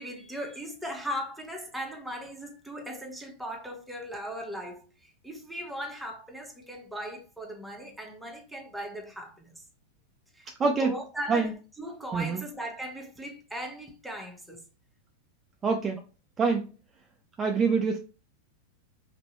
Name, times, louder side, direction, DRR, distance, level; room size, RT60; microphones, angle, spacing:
voice 1, 0.0-9.6 10.3-14.6, equal, 5° right, 1.2 m, -38 dB
voice 2, 10.6-10.9 11.3-11.5 12.1-12.4 15.6-16.0 16.4-16.6 17.4-18.0, right 4 dB, 20° right, 0.6 m, -25 dB
5.2 x 3.0 x 3.1 m
figure-of-eight pair, 95°, 0 cm